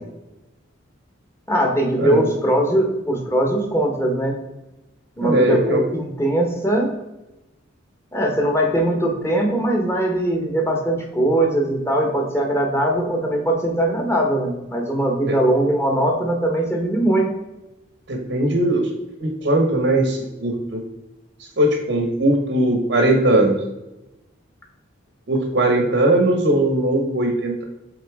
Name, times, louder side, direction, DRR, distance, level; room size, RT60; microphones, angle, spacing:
voice 1, 1.5-4.4 5.2-6.9 8.1-17.3, right 1 dB, 15° left, 1 dB, 1.2 m, -20 dB
voice 2, 5.2-5.8 15.3-15.4 18.1-18.9 19.2-20.8 21.6-23.6 25.3-27.6, right 1 dB, 70° right, 3 dB, 1.1 m, -19 dB
8.3 x 3.8 x 3.6 m, 0.98 s
head